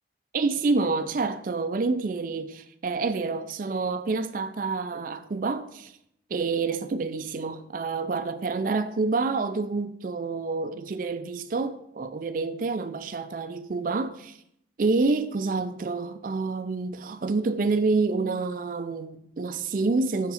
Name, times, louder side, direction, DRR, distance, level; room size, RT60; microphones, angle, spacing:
voice 1, 0.3-5.9 6.3-14.4 14.8-20.3, right 3 dB, 45° right, 0.4 m, -28 dB
6.9 x 5.8 x 4.1 m
head